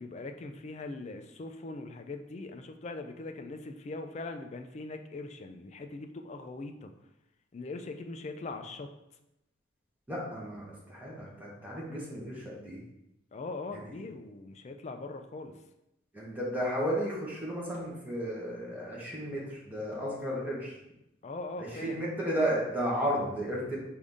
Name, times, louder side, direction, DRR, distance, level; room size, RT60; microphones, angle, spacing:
voice 1, 0.0-6.9 7.5-8.9 13.3-15.5 21.2-22.1, left 3 dB, 35° left, 6 dB, 0.3 m, -41 dB
voice 2, 10.1-12.8 16.1-20.7 21.6-23.8, equal, 10° right, -5 dB, 1.0 m, -33 dB
4.9 x 2.6 x 3.5 m, 0.88 s
head